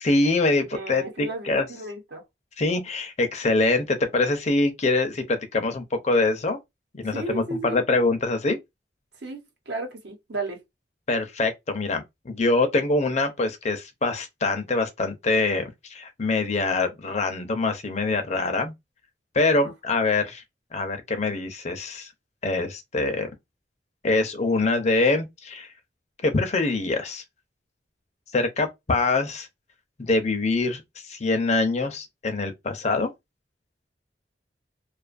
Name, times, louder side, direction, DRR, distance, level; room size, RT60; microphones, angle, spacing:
voice 1, 0.0-1.6 2.6-6.6 6.9-8.6 11.1-18.7 19.3-20.4 20.7-22.1 22.4-23.3 24.0-25.7 26.2-27.2 28.3-29.5 30.0-33.1, left 3 dB, 40° left, 0.6 m, -24 dB
voice 2, 0.7-2.2 7.1-7.8 9.2-10.6 19.5-19.7, right 2 dB, 70° right, 0.9 m, -34 dB
2.5 x 2.4 x 2.5 m
head